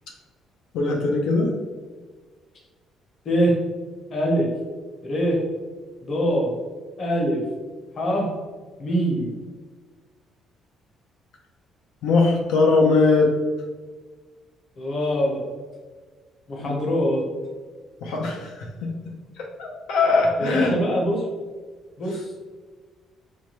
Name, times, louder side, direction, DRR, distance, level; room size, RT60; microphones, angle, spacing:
voice 1, 0.7-1.5 12.0-13.3 16.6-16.7 18.0-18.5 19.4-20.7, left 3 dB, 85° left, -1 dB, 0.6 m, -20 dB
voice 2, 3.2-3.6 4.1-4.5 5.0-5.4 6.0-6.5 7.0-7.4 8.0-8.3 8.8-9.3 14.8-15.4 16.5-17.2 20.4-21.2 22.0-22.4, equal, 35° left, -1 dB, 0.8 m, -23 dB
4.5 x 2.2 x 2.9 m, 1.4 s
cardioid pair, 170°, 0 cm